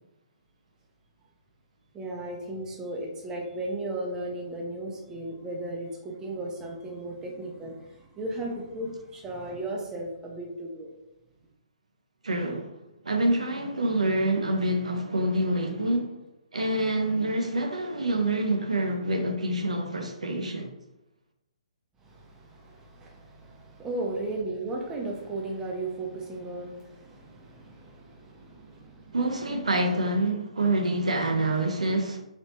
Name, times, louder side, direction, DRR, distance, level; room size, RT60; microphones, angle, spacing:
voice 1, 1.9-10.9 22.0-29.2 29.7-29.8, right 2 dB, 15° right, 0.6 m, -36 dB
voice 2, 12.2-12.7 13.0-16.1 16.5-20.7 29.1-32.2, right 1 dB, 80° right, 0.5 m, -26 dB
3.4 x 2.9 x 2.7 m
figure-of-eight pair, 130°, 4 cm